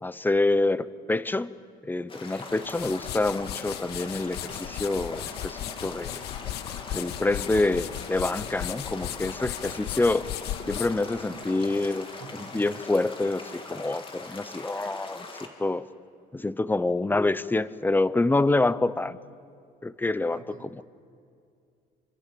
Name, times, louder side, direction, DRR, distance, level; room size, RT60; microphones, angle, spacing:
voice 1, 0.0-1.5 1.8-6.2 6.9-10.3 10.7-12.1 12.3-15.8 16.3-19.2 19.8-20.8, left 2 dB, 10° left, 16 dB, 0.8 m, -27 dB
sound 1, 2.1-15.5, left 3 dB, 30° left, 3.3 m, -41 dB
sound 2, 2.5-11.9, left 14 dB, 75° left, 0.7 m, -37 dB
voice 2, 12.1-12.8 20.3-20.8, right 6 dB, 50° right, 6 dB, 2.3 m, -48 dB
27.5 x 24.5 x 7.8 m, 2.4 s
cardioid pair, 110°, 17 cm